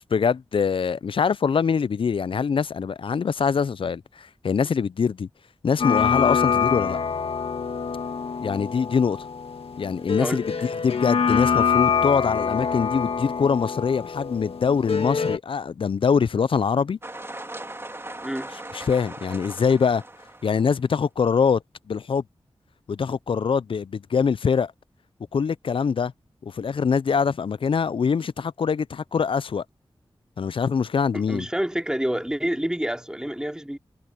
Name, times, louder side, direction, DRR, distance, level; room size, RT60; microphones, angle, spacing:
voice 1, 0.0-5.3 5.6-7.0 8.4-9.2 9.8-17.0 18.7-20.0 20.4-21.6 21.9-22.2 22.9-24.7 25.3-26.1 26.4-29.6 30.4-31.5, left 6 dB, 65° left, 0.4 m, -23 dB
sound 1, 5.8-15.4, left 6 dB, 90° left, 1.6 m, -25 dB
sound 2, 17.0-20.8, right 1 dB, 25° right, 3.3 m, -39 dB
voice 2, 31.1-33.8, equal, 10° right, 2.8 m, -28 dB
cardioid pair, 50°, 10 cm